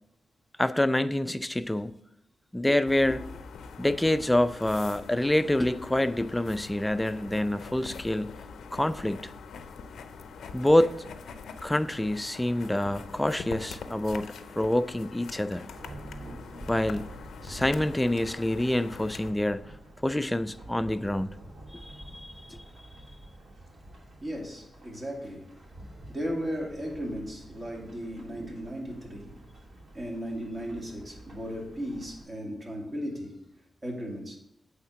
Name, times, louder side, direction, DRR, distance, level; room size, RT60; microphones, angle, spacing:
voice 1, 0.6-1.9 2.5-3.4 3.8-8.4 8.7-9.3 10.5-11.0 11.6-15.7 16.7-17.2 17.4-19.6 20.0-21.3 21.8-22.6, left 1 dB, 10° left, 12 dB, 0.4 m, -27 dB
sound 1, 2.9-19.3, left 5 dB, 85° left, 0.5 m, -44 dB
Thunderstorm / Rain, 15.7-32.2, right 1 dB, 65° right, 2.4 m, -48 dB
voice 2, 24.2-25.5 26.1-29.3 29.9-33.4 33.8-34.4, equal, 35° right, 0 dB, 2.3 m, -36 dB
8.3 x 3.6 x 5.7 m, 0.76 s
cardioid pair, 60°, 0 cm